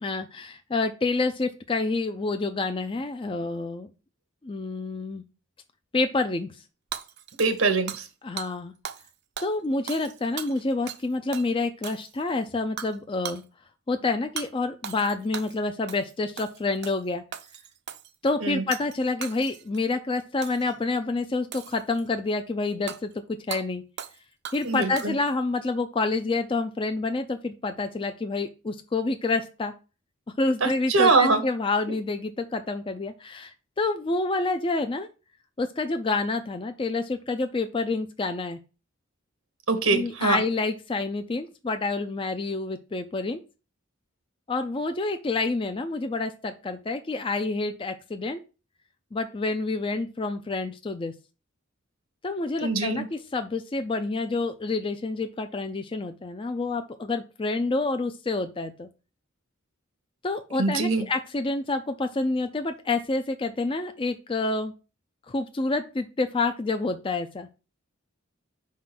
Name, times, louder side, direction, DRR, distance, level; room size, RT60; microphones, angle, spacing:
voice 1, 0.0-3.9 4.4-5.2 5.9-6.6 8.2-8.7 9.4-13.4 13.9-17.2 18.2-23.8 24.5-29.7 30.4-35.1 35.6-38.6 39.9-43.4 44.5-48.4 49.1-51.1 52.2-58.9 60.2-64.7 65.3-67.5, left 3 dB, 25° left, 0.4 m, -28 dB
Hammer / Shatter, 6.9-8.1 8.4-8.5 8.8-9.1 9.4-11.1 11.3-11.5 11.8-12.3 12.8-13.0 13.2-13.4 14.4-14.5 14.8-15.6 15.9-16.1 16.4-17.0 17.3-18.1 18.7-19.0 19.2-19.8 20.4-20.7 21.5-22.1 22.9-23.0 23.5-23.6 24.0-24.2 24.4-25.3, right 8 dB, 55° right, 0.6 m, -38 dB
voice 2, 7.4-8.1 18.4-18.6 24.6-25.2 30.6-31.4 39.7-40.4 52.6-53.1 60.6-61.1, right 3 dB, 85° right, 1.2 m, -23 dB
5.2 x 3.7 x 5.8 m
head